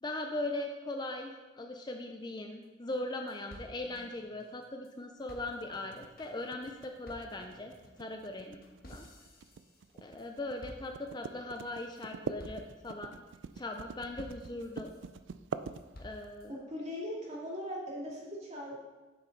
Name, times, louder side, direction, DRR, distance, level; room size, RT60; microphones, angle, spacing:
voice 1, 0.0-7.7 8.0-8.6 8.9-9.0 10.0-13.2 13.6-14.9 16.0-16.6, left 2 dB, 25° left, 4 dB, 0.5 m, -39 dB
sound 1, 2.6-2.7 2.9-3.0 3.3-4.9 5.3-10.3 10.6-11.3 11.7-12.0 12.4-12.9 13.3-13.8 14.2-15.1 15.5-16.5, left 1 dB, 50° left, 1.3 m, -54 dB
sound 2, 5.3-16.3, right 5 dB, 80° right, 0.4 m, -44 dB
voice 2, 16.5-18.7, equal, 35° right, -5 dB, 2.7 m, -39 dB
9.1 x 7.3 x 4.0 m, 1.2 s
head